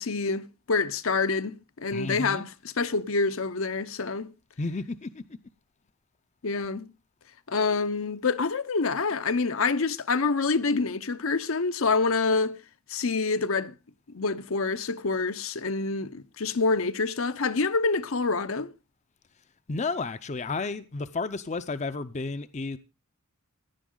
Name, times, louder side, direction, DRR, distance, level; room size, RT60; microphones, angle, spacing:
voice 1, 0.0-2.5 2.8-4.3 6.4-6.9 7.5-12.6 12.9-13.7 14.1-18.7, left 4 dB, 70° left, 0.8 m, -27 dB
voice 2, 1.9-2.5 4.6-5.2 19.7-22.8, left 3 dB, 35° left, 0.6 m, -32 dB
16.5 x 10.5 x 3.8 m
head